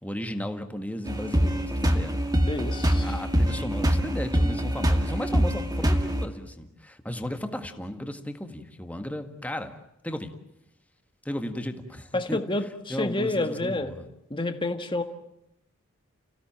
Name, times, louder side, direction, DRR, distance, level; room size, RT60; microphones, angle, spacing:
voice 1, 0.0-2.1 3.0-9.7 10.0-10.3 11.2-14.1, left 1 dB, 5° left, 7 dB, 1.8 m, -35 dB
sound 1, 1.1-6.3, equal, 15° right, 2.0 m, -24 dB
voice 2, 2.5-3.1 12.1-13.9 14.3-15.0, left 2 dB, 20° left, 7 dB, 1.5 m, -29 dB
30.0 x 17.0 x 8.9 m, 0.84 s
head